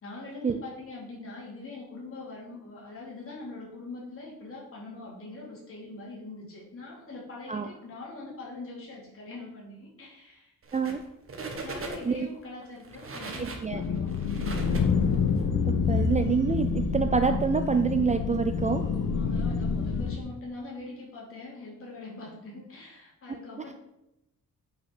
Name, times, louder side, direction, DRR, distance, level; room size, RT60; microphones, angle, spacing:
voice 1, 0.0-10.5 11.6-14.1 14.4-14.7 18.8-23.8, left 3 dB, 40° left, -4 dB, 4.1 m, -43 dB
sound 1, 10.6-11.0 11.3-12.2 12.8-15.4, right 3 dB, 40° right, 1.8 m, -39 dB
voice 2, 13.4-13.8 15.7-18.8, right 5 dB, 20° right, 8 dB, 0.4 m, -26 dB
sound 2, 13.7-20.2, left 5 dB, 70° left, 1.2 m, -27 dB
9.2 x 6.6 x 6.5 m, 0.90 s
wide cardioid pair, 180°, 34 cm